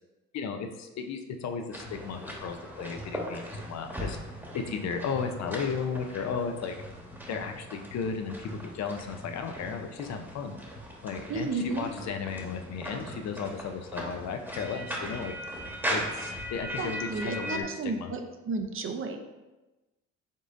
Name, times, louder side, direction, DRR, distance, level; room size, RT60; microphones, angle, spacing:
voice 1, 0.3-4.2 4.5-6.7 7.3-10.6 11.0-15.3 15.9-18.1, left 6 dB, 65° left, 6 dB, 0.6 m, -35 dB
sound 1, 1.7-17.6, equal, 5° right, 1.1 m, -39 dB
voice 2, 11.3-11.9 16.8-18.2 18.4-19.2, right 3 dB, 45° right, 5 dB, 0.6 m, -32 dB
5.4 x 3.8 x 2.5 m, 1.1 s
cardioid pair, 90°, 30 cm